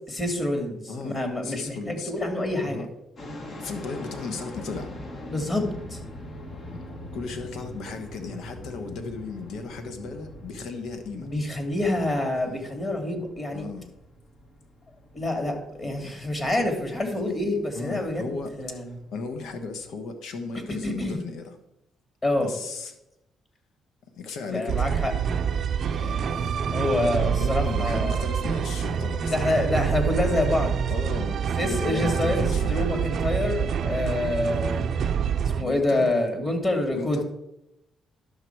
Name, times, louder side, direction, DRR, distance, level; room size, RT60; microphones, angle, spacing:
voice 1, 0.1-2.9 5.3-6.0 11.2-13.6 15.1-19.0 20.5-21.2 22.2-22.5 24.5-25.1 26.0-26.1 26.7-28.2 29.3-30.8 31.6-34.8 35.6-37.2, left 1 dB, 30° left, 4 dB, 2.4 m, -27 dB
voice 2, 0.9-2.1 2.6-2.9 3.6-4.9 6.7-6.8 7.1-11.3 12.4-12.7 13.5-13.9 15.8-15.9 17.1-17.3 17.7-21.5 22.4-22.9 24.2-24.9 26.0-26.5 27.4-29.6 30.9-33.1 35.6-36.1 36.9-37.2, left 4 dB, 80° left, 7 dB, 1.2 m, -36 dB
sound 1, 3.2-19.9, left 1 dB, 50° left, 1.5 m, -42 dB
sound 2, 24.7-35.6, right 7 dB, 60° right, 0.6 m, -26 dB
11.0 x 6.7 x 4.6 m, 0.87 s
cardioid pair, 90°, 0 cm